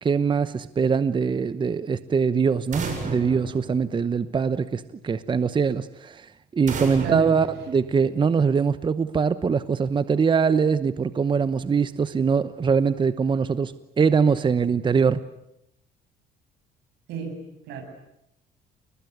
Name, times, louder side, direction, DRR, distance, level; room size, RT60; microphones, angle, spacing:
voice 1, 0.0-15.2, right 5 dB, 30° right, 14 dB, 1.0 m, -23 dB
sound 1, 2.7-4.5 6.7-8.4, right 4 dB, 50° right, 7.8 m, -34 dB
voice 2, 7.0-7.3 17.1-17.8, right 6 dB, 80° right, 6 dB, 8.0 m, -32 dB
29.5 x 21.0 x 9.7 m, 0.81 s
cardioid pair, 110°, 17 cm